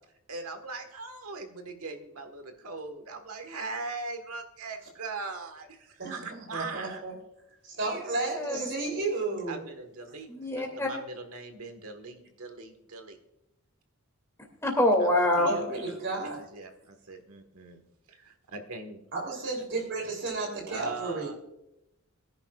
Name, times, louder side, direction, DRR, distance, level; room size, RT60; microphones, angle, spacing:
voice 1, 0.3-7.0 9.5-13.2 15.0-15.1 15.4-17.8 18.1-19.0 20.7-21.3, right 3 dB, 75° right, 1.6 m, -40 dB
voice 2, 6.0-7.1 7.6-9.6 15.4-16.4 19.1-21.3, right 3 dB, 55° right, 3.4 m, -33 dB
voice 3, 8.3-8.7 10.3-10.9 14.6-15.5, left 1 dB, 10° left, 2.6 m, -25 dB
21.5 x 10.5 x 2.4 m
head